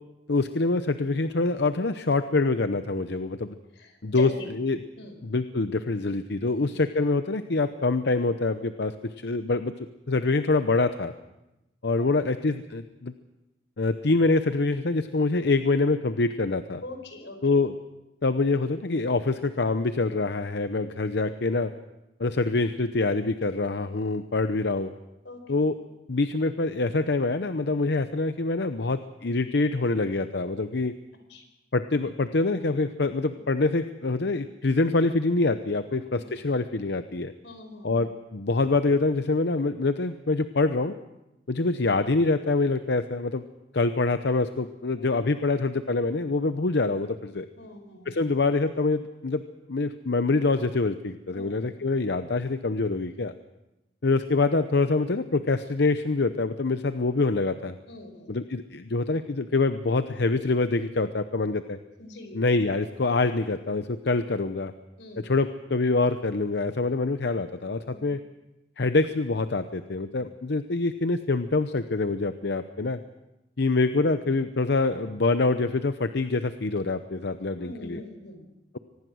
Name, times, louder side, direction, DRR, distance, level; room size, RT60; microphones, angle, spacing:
voice 1, 0.3-3.6 4.0-4.3 4.6-4.8 5.2-9.7 10.1-11.1 11.8-13.1 13.8-16.8 17.4-17.7 18.2-21.7 22.2-24.9 25.5-25.8 26.1-30.9 31.7-37.3 37.8-40.9 41.5-43.4 43.7-47.5 48.1-49.4 49.7-53.3 54.0-57.8 58.3-61.8 62.3-64.7 65.2-68.2 68.8-73.0 73.6-78.0, left 3 dB, 65° left, 10 dB, 0.8 m, -25 dB
voice 2, 3.7-4.5 5.0-5.2 12.0-12.1 16.8-17.6 25.2-25.6 31.3-31.4 33.3-33.4 35.9-36.2 37.4-38.0 45.0-45.1 47.6-48.2 51.3-51.5 57.9-58.4 62.0-62.4 65.0-65.3 67.8-68.1 77.6-78.5, left 2 dB, 90° left, 6 dB, 4.8 m, -42 dB
24.5 x 19.0 x 6.3 m, 0.95 s
head